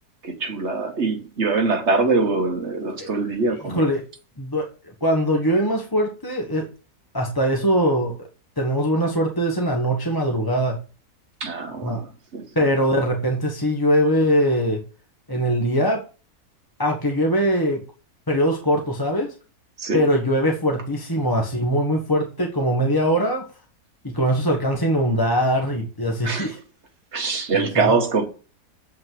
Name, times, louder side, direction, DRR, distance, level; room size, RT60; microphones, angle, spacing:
voice 1, 0.2-3.8 11.4-12.5 19.8-20.0 26.2-26.5 27.1-28.2, right 3 dB, 45° right, 1.7 m, -23 dB
voice 2, 3.7-4.0 4.4-4.7 5.0-6.7 7.1-8.2 8.6-10.8 11.8-12.0 12.5-14.8 15.3-16.1 16.8-17.8 18.3-19.3 19.9-23.5 24.0-26.6 27.5-27.9, equal, 15° left, 1.2 m, -22 dB
8.0 x 5.6 x 7.6 m
omnidirectional pair, 1.7 m